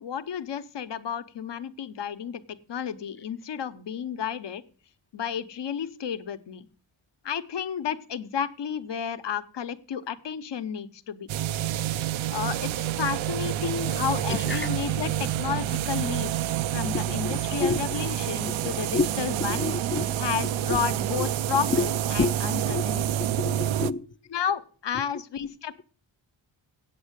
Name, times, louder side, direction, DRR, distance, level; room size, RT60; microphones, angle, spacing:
voice 1, 0.0-4.6 5.1-6.7 7.2-11.3 12.3-16.3 16.7-19.7 20.2-23.1 24.3-25.8, left 8 dB, 65° left, 1.0 m, -32 dB
sound 1, 11.3-23.9, right 11 dB, 85° right, 0.6 m, -28 dB
voice 2, 14.3-14.7 16.8-17.8 18.6-19.1 19.4-20.2 20.7-20.8 21.2-21.3 21.7-21.9 22.2-22.9 23.2-24.1, left 4 dB, 25° left, 0.5 m, -29 dB
8.7 x 7.4 x 8.1 m
wide cardioid pair, 95°, 46 cm